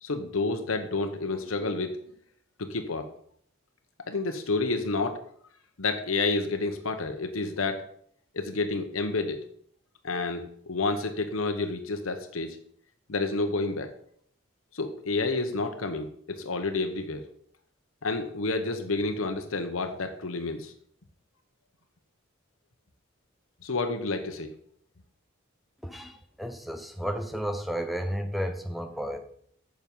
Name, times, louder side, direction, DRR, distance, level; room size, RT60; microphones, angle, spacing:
voice 1, 0.0-2.0 2.6-3.1 4.1-5.2 5.8-7.8 8.3-9.4 10.0-12.6 13.1-13.9 14.7-17.2 18.0-20.7 23.6-24.5, left 3 dB, 90° left, 6 dB, 1.0 m, -29 dB
voice 2, 25.8-29.2, equal, ahead, 7 dB, 0.9 m, -32 dB
9.4 x 6.3 x 5.5 m, 0.63 s
head